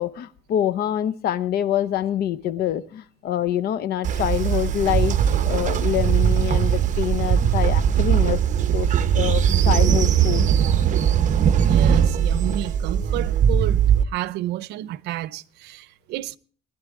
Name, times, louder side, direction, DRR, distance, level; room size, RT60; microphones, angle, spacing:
voice 1, 0.0-5.2 5.4-8.4 8.7-8.9 9.1-10.5, left 11 dB, 70° left, 0.9 m, -25 dB
Train, 4.0-14.0, right 8 dB, 50° right, 0.9 m, -20 dB
voice 2, 11.6-16.4, right 16 dB, 80° right, 0.6 m, -31 dB
19.5 x 11.5 x 3.6 m
cardioid pair, 110°, 17 cm